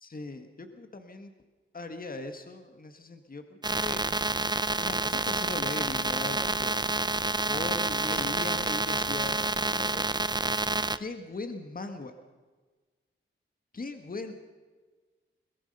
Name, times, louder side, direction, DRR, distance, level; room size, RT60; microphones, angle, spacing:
voice 1, 0.0-1.3 1.7-4.0 4.8-6.9 7.5-10.1 11.0-12.1 13.7-14.3, left 3 dB, 45° left, 7 dB, 1.7 m, -39 dB
sound 1, 3.6-11.0, right 2 dB, 20° right, 0.6 m, -28 dB
23.0 x 21.5 x 5.5 m, 1.4 s
wide cardioid pair, 110°, 21 cm